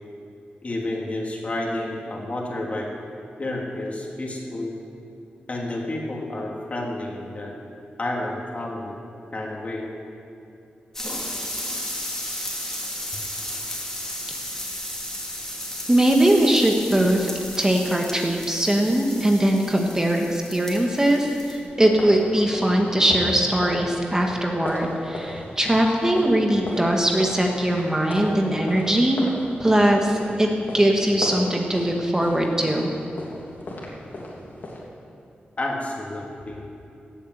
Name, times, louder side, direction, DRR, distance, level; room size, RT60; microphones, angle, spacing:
voice 1, 0.6-2.9 3.4-4.7 5.5-7.5 8.0-8.9 9.3-9.9 35.6-36.6, left 1 dB, 40° left, -2 dB, 3.0 m, -30 dB
sound 1, 10.9-21.7 22.0-22.3, left 1 dB, 10° left, 3.2 m, -34 dB
voice 2, 15.9-17.3 17.6-29.2 29.6-30.5 30.7-32.9, right 1 dB, 15° right, 1 dB, 1.6 m, -21 dB
sound 2, 21.8-34.8, left 1 dB, 60° left, 3.2 m, -36 dB
16.5 x 8.5 x 8.1 m, 2.6 s
cardioid pair, 80°, 4 cm